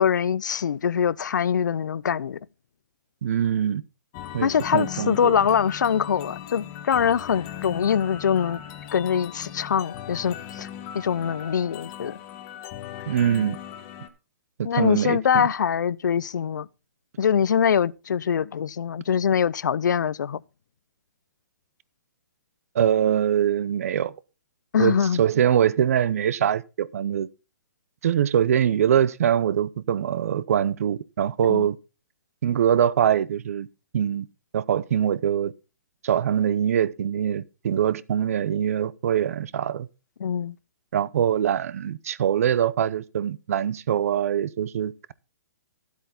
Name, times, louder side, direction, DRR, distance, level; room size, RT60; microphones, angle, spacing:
voice 1, 0.0-2.4 4.4-8.6 8.9-10.7 10.9-12.2 14.6-16.7 17.2-20.4 24.7-25.2 31.4-31.7 40.2-40.6, left 8 dB, 85° left, 0.5 m, -23 dB
voice 2, 3.2-3.8 4.3-5.4 13.1-13.6 14.6-15.4 22.7-24.1 24.8-27.3 28.0-31.8 32.4-33.7 33.9-34.3 34.5-35.5 36.0-39.9 40.9-45.1, right 9 dB, 55° right, 0.6 m, -23 dB
sound 1, 4.1-14.1, left 10 dB, 25° left, 1.1 m, -39 dB
12.5 x 8.2 x 3.9 m
hypercardioid pair, 165°, 10 cm